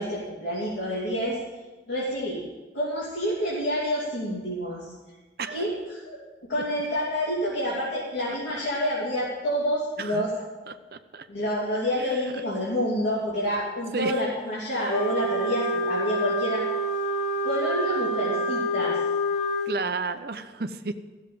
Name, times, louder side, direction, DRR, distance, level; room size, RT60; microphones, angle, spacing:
voice 1, 0.0-1.4 1.9-2.4 2.7-4.9 5.5-6.2 6.5-10.3 11.3-16.6 17.4-19.0, equal, 90° left, -8 dB, 3.2 m, -28 dB
voice 2, 10.7-11.3 12.0-12.2 13.9-14.1 19.7-20.9, right 4 dB, 55° right, 9 dB, 0.7 m, -32 dB
Wind instrument woodwind instrument, 14.9-19.7, equal, 40° left, 1.4 m, -27 dB
14.5 x 7.3 x 7.7 m, 1.3 s
head